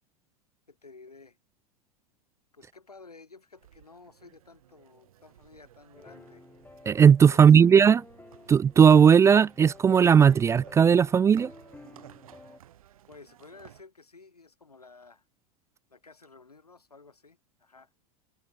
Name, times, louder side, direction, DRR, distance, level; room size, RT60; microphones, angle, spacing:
voice 1, 0.7-1.4 2.5-6.4 7.3-7.8 13.1-15.2 15.9-17.9, left 4 dB, 85° left, 7.4 m, -53 dB
sound 1, 3.6-13.8, right 12 dB, 65° right, 7.9 m, -54 dB
sound 2, 5.9-12.6, left 3 dB, 10° left, 3.7 m, -52 dB
voice 2, 6.9-8.0 8.5-11.5, right 7 dB, 15° right, 0.3 m, -17 dB
figure-of-eight pair, 90°, 19 cm